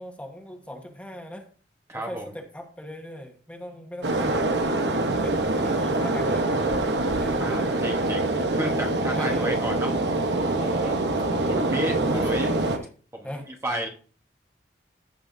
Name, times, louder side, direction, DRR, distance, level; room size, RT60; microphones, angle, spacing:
voice 1, 0.0-1.5 1.9-6.8 7.1-7.8 9.1-9.7 11.4-12.9 13.2-13.4, left 1 dB, 10° left, 3 dB, 1.3 m, -40 dB
voice 2, 1.9-2.3 7.4-8.3 8.6-9.9 10.4-10.9 11.5-12.5 13.1-13.9, right 1 dB, 15° right, 1 dB, 1.1 m, -32 dB
sound 1, 4.0-12.8, right 2 dB, 70° right, 1.0 m, -25 dB
15.0 x 5.5 x 2.7 m, 0.41 s
head